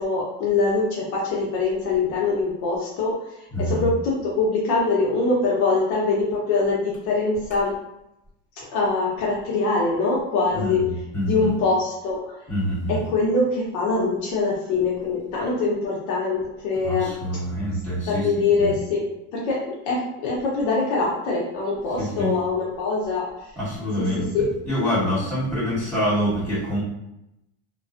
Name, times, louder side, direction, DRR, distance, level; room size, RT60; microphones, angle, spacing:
voice 1, 0.0-3.2 3.6-7.7 8.6-10.8 11.3-12.2 12.9-17.1 18.1-19.0 19.3-23.2 24.0-24.1 24.3-24.5, left 3 dB, 60° left, -4 dB, 0.7 m, -23 dB
voice 2, 3.5-3.9 10.5-11.5 12.5-12.9 16.8-18.7 22.0-22.3 23.5-24.3 24.6-26.8, equal, 5° left, -11 dB, 1.4 m, -26 dB
2.4 x 2.2 x 2.4 m, 0.87 s
supercardioid pair, 155°, 31 cm